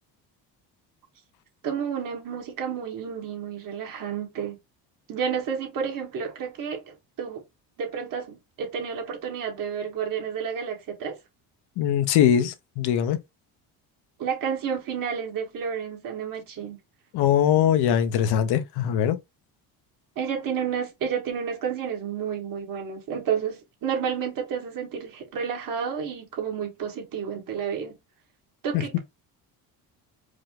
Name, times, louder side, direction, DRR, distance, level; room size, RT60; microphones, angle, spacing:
voice 1, 1.6-4.6 5.1-7.4 7.8-11.2 14.2-16.8 20.2-28.0 28.6-29.0, right 7 dB, 55° right, 1.8 m, -31 dB
voice 2, 11.8-13.2 17.1-19.2, left 9 dB, 75° left, 0.8 m, -21 dB
4.9 x 2.1 x 3.7 m
cardioid pair, 125°, 40 cm